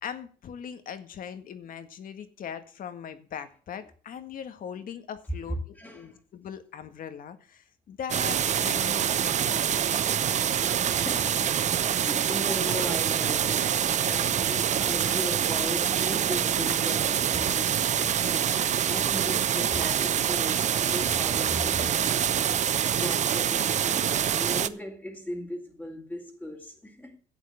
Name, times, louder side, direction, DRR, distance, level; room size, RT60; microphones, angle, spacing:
voice 1, 0.0-9.8, left 8 dB, 55° left, 1.8 m, -40 dB
voice 2, 5.5-6.2 10.8-18.6 18.9-22.4 23.0-27.2, left 1 dB, 5° left, 2.7 m, -38 dB
sound 1, 8.1-24.7, right 9 dB, 45° right, 0.8 m, -26 dB
11.5 x 8.1 x 7.9 m
cardioid pair, 110°, 17 cm